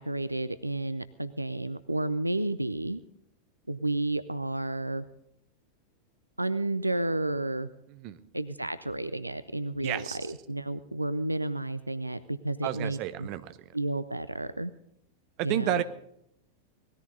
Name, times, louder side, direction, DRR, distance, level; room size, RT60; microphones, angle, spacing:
voice 1, 0.0-3.0 3.7-5.0 6.4-7.7 8.3-13.3 13.7-14.7 15.4-15.8, right 2 dB, 85° right, 13 dB, 0.5 m, -31 dB
voice 2, 9.8-10.2 12.6-13.6 15.4-15.8, right 13 dB, 40° right, 12 dB, 0.9 m, -31 dB
19.0 x 14.0 x 4.0 m, 0.73 s
figure-of-eight pair, 90°, 0 cm